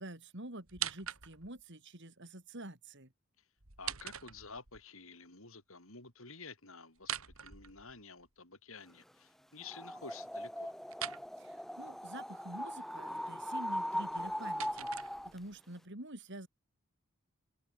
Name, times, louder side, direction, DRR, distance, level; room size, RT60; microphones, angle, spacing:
voice 1, 0.0-3.1 11.4-16.5, right 1 dB, 55° right, 4.8 m, -48 dB
sound 1, 0.7-1.6 3.6-4.8 7.0-8.3 10.9-11.3 14.0-15.6, right 11 dB, 70° right, 3.7 m, -43 dB
voice 2, 3.8-10.8, left 4 dB, 65° left, 6.3 m, -51 dB
sound 2, 9.6-15.4, equal, ahead, 1.6 m, -40 dB
head